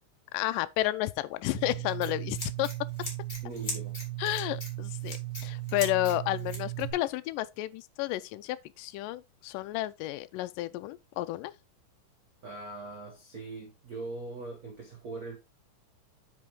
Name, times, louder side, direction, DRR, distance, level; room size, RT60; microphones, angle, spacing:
voice 1, 0.3-2.7 4.2-11.5, left 16 dB, 85° left, 2.2 m, -31 dB
Scissors, 1.5-6.9, right 8 dB, 15° left, 2.7 m, -36 dB
voice 2, 3.4-3.9 12.4-15.4, right 3 dB, 70° right, 0.8 m, -41 dB
8.6 x 5.3 x 3.6 m
omnidirectional pair, 3.8 m